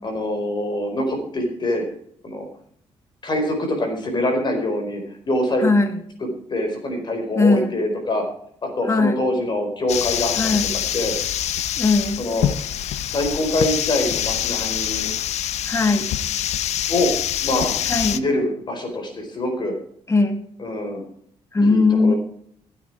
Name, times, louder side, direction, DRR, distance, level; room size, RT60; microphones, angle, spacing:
voice 1, 0.0-1.9 2.2-2.5 3.2-5.0 5.3-5.6 6.2-8.2 8.6-11.2 12.2-12.4 13.1-15.1 16.9-17.1 17.4-17.8 18.0-19.8 20.6-21.0 21.6-22.2, left 1 dB, 40° left, 4 dB, 4.6 m, -24 dB
voice 2, 5.6-6.0 7.4-7.7 8.9-9.2 10.4-10.7 11.8-12.2 15.7-16.1 17.9-18.2 20.1-20.4 21.5-22.1, left 3 dB, 25° left, 7 dB, 2.2 m, -18 dB
sound 1, 9.9-18.2, left 11 dB, 75° left, 0.8 m, -25 dB
15.5 x 9.3 x 5.0 m, 0.65 s
cardioid pair, 95°, 12 cm